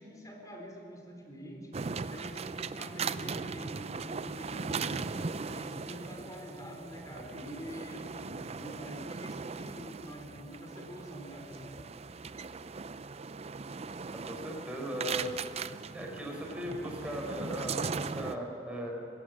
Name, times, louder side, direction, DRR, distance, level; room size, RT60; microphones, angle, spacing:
voice 1, 0.0-1.8 2.1-5.2 5.5-11.8, equal, 20° left, 2 dB, 3.8 m, -45 dB
sound 1, 1.7-18.4, right 5 dB, 35° right, 0.5 m, -39 dB
voice 2, 14.2-15.3 15.9-18.9, equal, 5° right, -1 dB, 4.6 m, -38 dB
21.0 x 17.0 x 7.5 m, 2.8 s
head